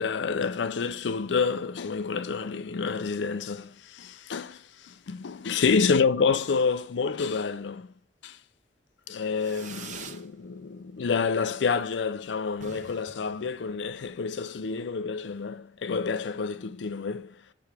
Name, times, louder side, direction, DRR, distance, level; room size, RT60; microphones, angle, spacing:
voice 1, 0.0-7.9 8.2-8.4 9.1-17.4, left 5 dB, 85° left, 0.5 m, -28 dB
Fireworks, 9.3-10.3 10.6-11.2 11.5-11.6 11.8-11.9 12.2-12.3 12.5-14.2, right 6 dB, 45° right, 0.6 m, -45 dB
6.9 x 4.9 x 3.4 m
head